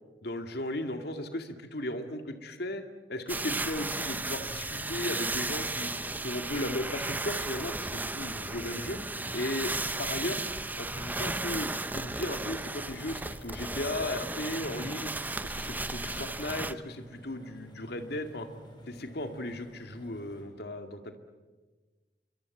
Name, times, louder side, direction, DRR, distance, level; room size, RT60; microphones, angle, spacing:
voice 1, 0.2-2.8 3.1-5.9 6.2-9.0 9.3-10.4 10.8-15.1 15.4-18.5 18.9-21.2, left 1 dB, 60° left, 6 dB, 2.2 m, -36 dB
sound 1, 3.3-16.7, right 2 dB, 10° right, 0.8 m, -35 dB
sound 2, 3.4-20.4, right 1 dB, 25° left, 6.6 m, -51 dB
28.0 x 24.0 x 8.4 m, 1.3 s
head